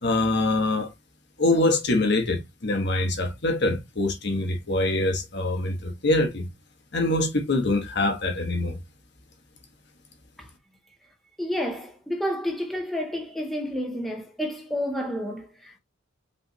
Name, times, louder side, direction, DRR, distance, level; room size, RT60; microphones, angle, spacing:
voice 1, 0.0-0.9 1.4-6.5 6.9-8.8, left 2 dB, 55° left, 1.1 m, -24 dB
voice 2, 11.4-15.8, equal, ahead, 0.7 m, -30 dB
5.4 x 3.3 x 3.0 m
head